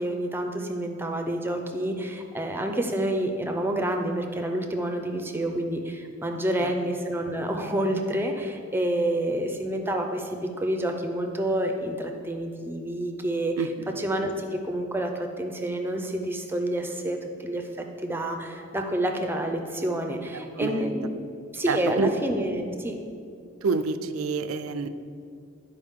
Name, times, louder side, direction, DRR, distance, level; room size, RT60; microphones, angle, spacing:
voice 1, 0.0-13.5 14.0-21.3 21.5-23.0, right 1 dB, 10° right, 4 dB, 0.5 m, -28 dB
voice 2, 6.3-6.7 13.6-14.0 20.6-20.9 21.7-22.1 23.6-24.9, right 4 dB, 85° right, 11 dB, 0.4 m, -28 dB
11.5 x 4.9 x 3.6 m, 2.5 s
head